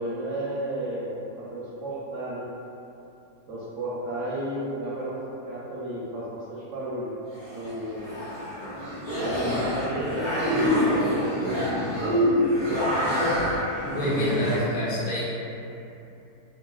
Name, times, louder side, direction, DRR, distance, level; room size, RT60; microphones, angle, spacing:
voice 1, 0.0-2.5 3.5-5.2 5.4-7.1 7.5-8.1 9.2-12.3, right 1 dB, 65° right, -8 dB, 0.8 m, -33 dB
sound 1, 7.3-14.6, equal, 20° left, 0.8 m, -26 dB
voice 2, 13.8-15.2, equal, 70° left, -7 dB, 1.3 m, -27 dB
3.8 x 2.2 x 2.3 m, 2.8 s
omnidirectional pair, 1.8 m